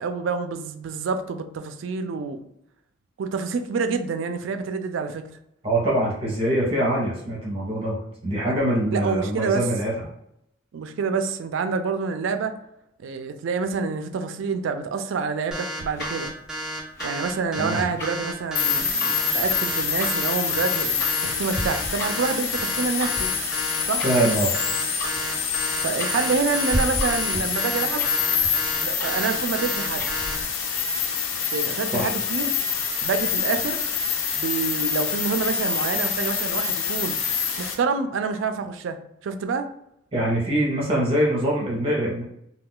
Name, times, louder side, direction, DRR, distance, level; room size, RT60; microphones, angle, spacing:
voice 1, 0.0-2.4 3.2-5.3 8.9-9.7 10.7-12.5 13.0-16.3 17.0-23.3 23.9-24.0 25.8-28.1 28.8-30.1 31.5-32.5 33.0-33.8 34.3-37.2 37.6-39.7, right 5 dB, 70° right, 8 dB, 0.3 m, -27 dB
voice 2, 5.6-9.9 17.6-17.9 24.0-24.5 31.9-32.1 40.1-42.2, right 1 dB, 30° right, -4 dB, 0.7 m, -23 dB
sound 1, 15.5-30.3, right 1 dB, 5° right, 0.4 m, -32 dB
Tick-tock, 15.8-30.4, equal, 50° left, 1.1 m, -35 dB
sound 2, 18.6-37.7, left 6 dB, 80° left, 0.5 m, -26 dB
2.3 x 2.2 x 3.6 m, 0.75 s
head